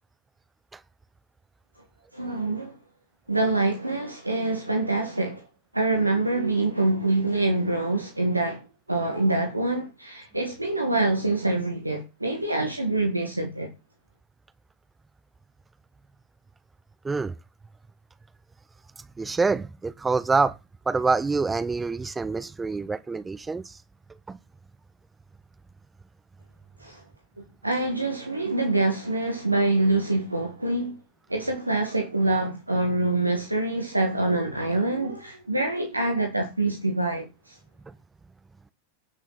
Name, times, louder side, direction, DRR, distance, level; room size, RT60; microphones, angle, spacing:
voice 1, 2.1-2.8 3.3-5.5 5.7-13.7 26.8-27.0 27.6-30.9 31.3-37.6, right 2 dB, 85° right, 1.7 m, -25 dB
voice 2, 17.0-17.4 19.0-20.6 20.9-23.8 24.3-24.4 37.9-38.0, right 4 dB, 10° right, 0.6 m, -26 dB
17.0 x 6.2 x 4.1 m
figure-of-eight pair, 90°, 0 cm